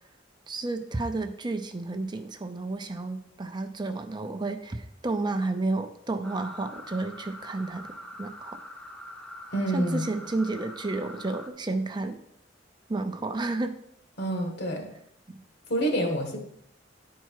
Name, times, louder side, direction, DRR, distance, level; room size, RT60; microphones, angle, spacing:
voice 1, 0.5-8.6 9.7-12.2 12.9-13.8 15.3-15.4, right 2 dB, 25° right, 7 dB, 0.5 m, -31 dB
sound 1, 6.2-11.5, left 1 dB, 5° left, 0.8 m, -44 dB
voice 2, 9.5-10.1 14.2-14.9 15.7-16.4, right 1 dB, 60° left, 3 dB, 1.7 m, -27 dB
10.0 x 4.6 x 4.7 m, 0.73 s
head